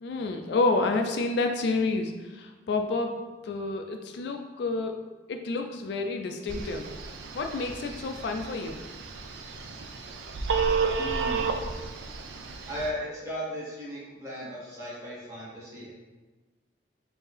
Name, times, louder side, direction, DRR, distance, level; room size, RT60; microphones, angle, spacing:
voice 1, 0.0-5.0 5.3-6.9 7.3-8.8, left 3 dB, 65° left, 5 dB, 0.3 m, -29 dB
Telephone, 6.5-12.9, right 5 dB, 85° right, 0.4 m, -32 dB
voice 2, 11.0-11.5 12.7-15.9, equal, 15° right, -8 dB, 1.5 m, -36 dB
4.4 x 2.7 x 3.3 m, 1.2 s
head